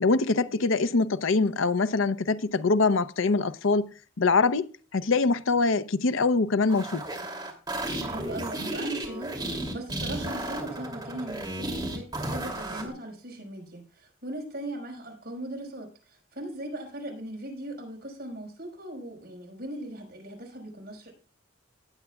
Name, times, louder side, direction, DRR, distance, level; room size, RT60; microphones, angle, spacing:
voice 1, 0.0-3.9 4.2-7.0, left 3 dB, 75° left, 0.6 m, -24 dB
sound 1, 6.7-12.9, right 1 dB, 20° right, 2.8 m, -33 dB
voice 2, 8.0-21.1, right 1 dB, 50° right, 5.0 m, -39 dB
18.0 x 8.1 x 2.3 m
head